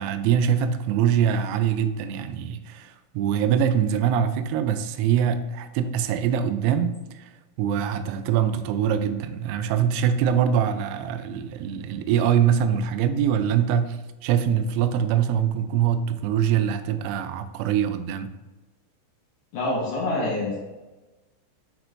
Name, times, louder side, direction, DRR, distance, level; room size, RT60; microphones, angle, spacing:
voice 1, 0.0-7.3 7.6-18.3, right 8 dB, 90° right, 10 dB, 3.3 m, -23 dB
voice 2, 19.5-20.6, left 2 dB, 70° left, -4 dB, 3.0 m, -26 dB
7.6 x 6.1 x 2.6 m, 1.1 s
omnidirectional pair, 5.9 m